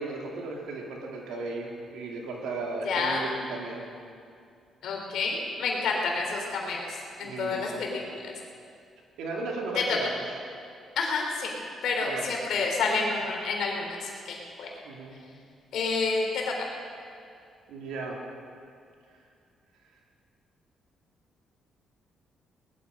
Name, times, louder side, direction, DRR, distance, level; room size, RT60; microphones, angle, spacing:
voice 1, 0.0-3.8 7.2-7.8 9.2-10.2 12.0-12.3 14.8-15.2 17.7-18.2, right 3 dB, 90° right, -1 dB, 2.6 m, -35 dB
voice 2, 2.8-3.2 4.8-8.3 9.8-10.0 11.0-11.6 11.8-14.7 15.7-16.7, left 4 dB, 75° left, 0 dB, 3.3 m, -29 dB
19.5 x 12.0 x 5.3 m, 2.4 s
cardioid pair, 90°, 0 cm